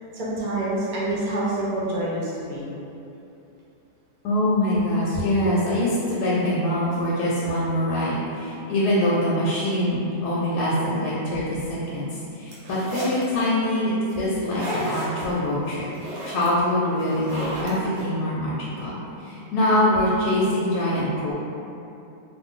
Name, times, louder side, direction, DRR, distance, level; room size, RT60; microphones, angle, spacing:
voice 1, 0.1-2.7 8.5-8.6, right 1 dB, 65° right, -6 dB, 1.0 m, -27 dB
voice 2, 4.2-12.1 12.4-15.9 16.3-19.0 19.2-21.3, left 1 dB, 75° left, -7 dB, 1.1 m, -24 dB
sound 1, 12.5-13.2 14.3-15.2 15.7-16.5 17.0-18.0, equal, 85° right, 1.4 m, -32 dB
2.8 x 2.5 x 3.6 m, 2.7 s
omnidirectional pair, 1.8 m